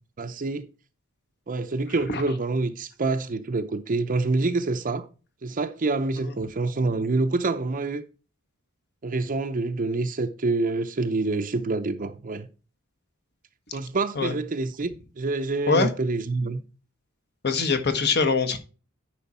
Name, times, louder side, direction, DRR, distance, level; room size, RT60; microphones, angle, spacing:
voice 1, 0.2-0.7 1.5-5.1 5.4-8.0 9.0-12.5 13.7-16.6, right 3 dB, 40° right, 0.6 m, -27 dB
voice 2, 17.4-18.6, left 4 dB, 50° left, 1.2 m, -23 dB
10.5 x 5.0 x 4.2 m
head